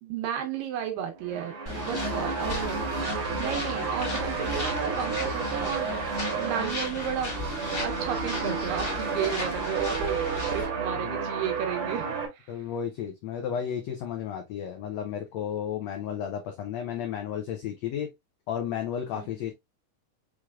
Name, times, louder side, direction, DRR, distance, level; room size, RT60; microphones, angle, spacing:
voice 1, 0.0-2.8 3.4-7.3 7.8-12.1 12.3-12.5 19.1-19.4, right 8 dB, 85° right, 2.7 m, -33 dB
sound 1, 1.2-12.3, right 5 dB, 55° right, 1.6 m, -31 dB
sound 2, 1.7-10.7, left 2 dB, 25° left, 1.2 m, -36 dB
voice 2, 12.5-18.1 18.5-19.5, left 8 dB, 85° left, 1.5 m, -33 dB
6.0 x 3.3 x 2.3 m
omnidirectional pair, 3.9 m